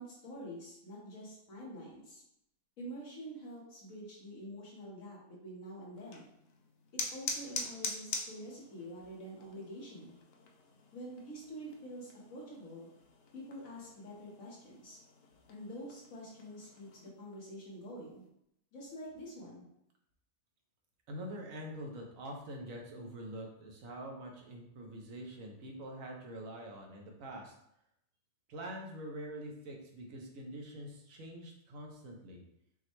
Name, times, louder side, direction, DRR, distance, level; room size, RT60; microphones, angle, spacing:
voice 1, 0.0-2.2 2.8-6.2 6.9-10.1 10.9-12.9 13.3-15.0 15.5-18.2 18.7-19.7, equal, 90° left, -4 dB, 1.7 m, -47 dB
sound 1, 5.9-17.1, left 3 dB, 60° left, 0.7 m, -45 dB
voice 2, 21.1-27.5 28.5-32.4, right 1 dB, 85° right, 1 dB, 1.2 m, -45 dB
5.9 x 2.2 x 3.0 m, 0.77 s
omnidirectional pair, 1.4 m